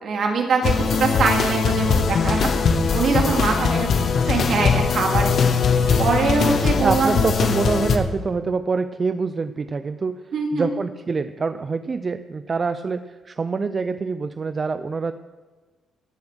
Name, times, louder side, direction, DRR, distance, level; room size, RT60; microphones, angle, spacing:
voice 1, 0.0-2.5 2.9-5.5 6.0-7.2 10.3-10.7, right 4 dB, 60° right, 1 dB, 2.6 m, -23 dB
sound 1, 0.6-8.0, left 5 dB, 60° left, 1.4 m, -20 dB
voice 2, 6.8-15.1, right 4 dB, 35° right, 11 dB, 0.5 m, -25 dB
17.0 x 7.2 x 6.3 m, 1.3 s
cardioid pair, 90°, 0 cm